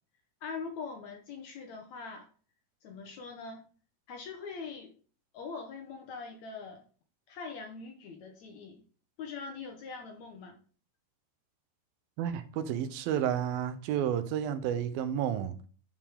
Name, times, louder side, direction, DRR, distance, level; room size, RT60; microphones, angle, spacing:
voice 1, 0.4-2.3 2.8-3.7 4.1-4.9 5.3-6.8 7.3-8.8 9.2-10.6, left 5 dB, 70° left, 1.8 m, -42 dB
voice 2, 12.2-15.6, right 9 dB, 85° right, 2.5 m, -31 dB
11.0 x 4.8 x 3.5 m
omnidirectional pair, 4.1 m